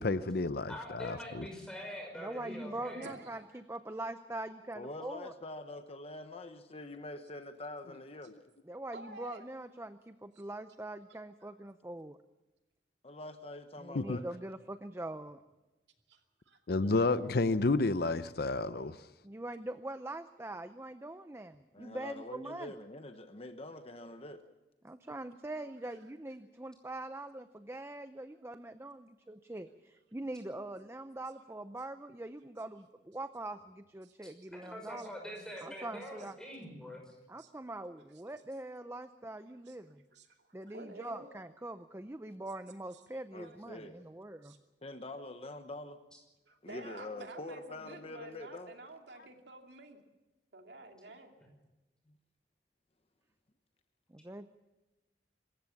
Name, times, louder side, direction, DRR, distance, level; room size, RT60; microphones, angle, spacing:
voice 1, 0.0-1.4 13.9-14.2 16.7-19.0, left 3 dB, 60° left, 13 dB, 0.7 m, -30 dB
voice 2, 0.7-3.1 34.5-37.2, equal, 5° left, 1 dB, 6.0 m, -44 dB
voice 3, 2.1-5.3 8.6-12.2 13.8-15.4 19.2-22.7 24.8-35.1 35.6-36.4 37.3-40.0 40.5-44.6 54.1-54.5, right 2 dB, 15° right, 10 dB, 0.6 m, -43 dB
voice 4, 2.7-3.4 8.9-9.5 16.1-16.2 16.5-16.9 34.0-34.1 35.0-35.1 37.4-37.5 39.7-39.8 40.1-41.3 43.1-43.6 44.4-44.6 46.5-50.0 50.5-51.3, right 2 dB, 75° right, 3 dB, 2.6 m, -50 dB
voice 5, 4.7-8.4 13.0-14.2 21.7-24.5 43.3-44.1 44.8-46.0 46.6-48.7, left 2 dB, 35° left, 8 dB, 1.0 m, -45 dB
25.5 x 14.5 x 7.2 m, 1.1 s
head